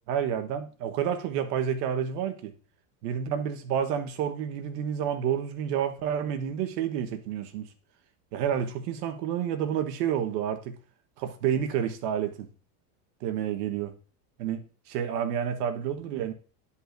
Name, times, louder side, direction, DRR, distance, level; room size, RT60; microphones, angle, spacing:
voice 1, 0.1-2.5 3.0-7.7 8.3-10.8 11.2-12.5 13.2-13.9 14.4-16.3, right 9 dB, 75° right, 8 dB, 1.4 m, -29 dB
11.0 x 5.6 x 2.6 m, 0.39 s
supercardioid pair, 105°, 48 cm